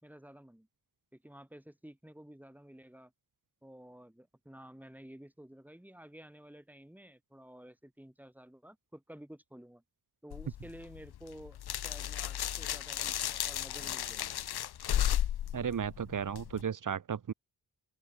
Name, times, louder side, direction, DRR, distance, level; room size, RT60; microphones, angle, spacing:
voice 1, 0.0-0.7 1.1-3.1 3.6-9.8 10.2-14.4, right 1 dB, 5° right, 4.5 m, -52 dB
sound 1, 10.3-16.6, left 11 dB, 80° left, 0.7 m, -34 dB
voice 2, 15.5-17.3, right 7 dB, 55° right, 1.2 m, -34 dB
open air
wide cardioid pair, 135°, 38 cm